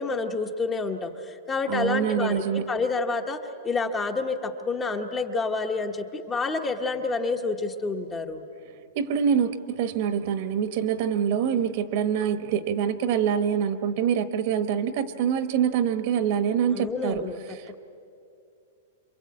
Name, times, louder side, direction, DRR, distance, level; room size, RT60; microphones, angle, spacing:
voice 1, 0.0-8.4 16.7-17.4, left 3 dB, 15° left, 5 dB, 1.0 m, -28 dB
voice 2, 1.7-2.7 8.9-17.2 17.5-17.8, right 8 dB, 45° right, 11 dB, 1.3 m, -25 dB
27.0 x 23.5 x 8.6 m, 2.6 s
supercardioid pair, 165°, 0 cm